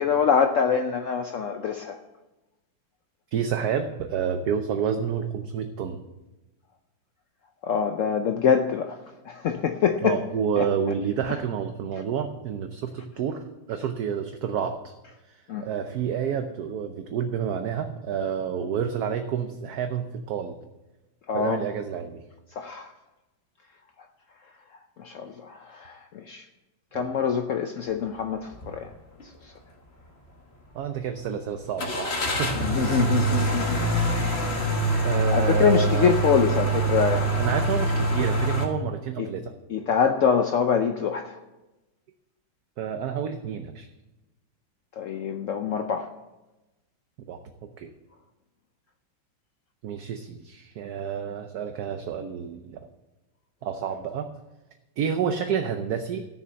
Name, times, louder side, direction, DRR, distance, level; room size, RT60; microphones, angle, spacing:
voice 1, 0.0-2.0 7.6-9.0 9.2-10.2 10.6-10.7 15.5-15.7 21.3-21.6 22.6-22.9 25.0-26.5 26.9-28.9 29.4-29.5 32.5-33.9 34.9-37.5 39.2-39.3 39.7-41.4 45.0-46.1, left 7 dB, 85° left, 7 dB, 0.7 m, -25 dB
voice 2, 3.3-6.0 10.0-14.9 15.3-20.6 21.3-22.2 26.9-27.1 30.7-33.1 35.0-36.4 37.4-39.5 42.8-43.9 47.3-47.9 49.8-52.9 53.6-54.3 55.0-56.3, right 7 dB, 65° right, 7 dB, 1.1 m, -29 dB
sound 1, 28.5-28.7 29.2-29.3 31.8-38.6, right 1 dB, 35° left, 1.6 m, -24 dB
14.0 x 6.8 x 7.6 m, 1.1 s
omnidirectional pair, 2.1 m